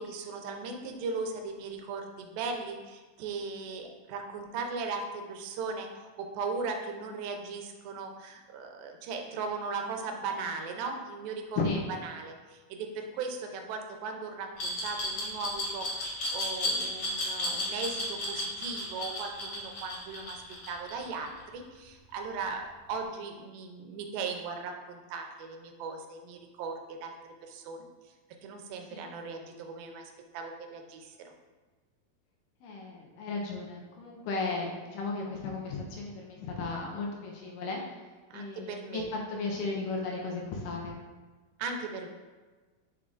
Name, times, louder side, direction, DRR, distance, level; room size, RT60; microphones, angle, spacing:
voice 1, 0.0-11.6 12.0-15.9 16.3-27.9 28.4-31.3 38.3-39.1 41.6-42.1, right 4 dB, 85° right, 4 dB, 2.4 m, -38 dB
Glass, 14.6-21.4, left 1 dB, 60° left, 1.6 m, -33 dB
voice 2, 32.6-37.8 38.3-39.0 39.3-40.9, left 3 dB, 75° left, -1 dB, 2.1 m, -35 dB
6.9 x 6.3 x 2.5 m, 1.3 s
omnidirectional pair, 4.1 m